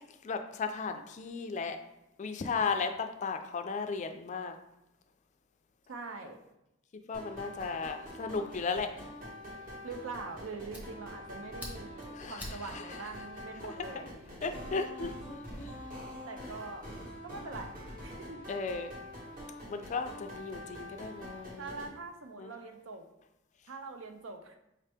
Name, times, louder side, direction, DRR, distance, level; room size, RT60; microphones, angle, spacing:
voice 1, 0.2-1.8 2.2-4.5 7.1-8.9 12.2-12.5 12.7-12.8 13.6-14.1 14.4-15.8 18.5-18.9 19.7-21.7 22.4-22.5, left 4 dB, 35° left, 7 dB, 0.3 m, -35 dB
voice 2, 5.9-6.4 9.8-14.1 16.3-16.9 17.2-18.4 21.6-23.0 23.7-24.6, right 4 dB, 75° right, 5 dB, 0.6 m, -43 dB
sound 1, 7.1-21.9, equal, 45° right, 1.3 m, -45 dB
Fire, 10.3-14.7, equal, 10° right, 0.8 m, -50 dB
5.0 x 2.8 x 3.4 m, 0.88 s
head